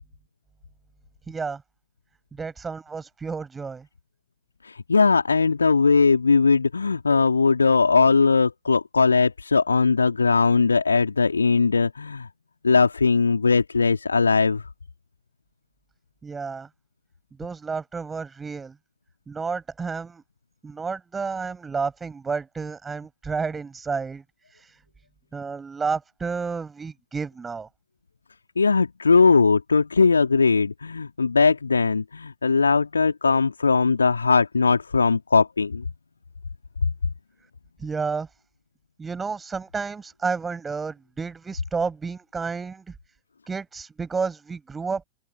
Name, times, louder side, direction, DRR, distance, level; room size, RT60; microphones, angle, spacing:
voice 1, 1.3-1.6 2.3-3.9 16.2-16.7 17.4-18.8 19.3-20.2 20.6-24.8 25.3-27.7 37.8-38.3 39.0-43.0 43.5-45.0, right 5 dB, 15° right, 7.3 m, -31 dB
voice 2, 4.6-12.3 12.6-14.6 28.6-35.8, left 4 dB, 75° left, 3.4 m, -19 dB
figure-of-eight pair, 90°, 0 cm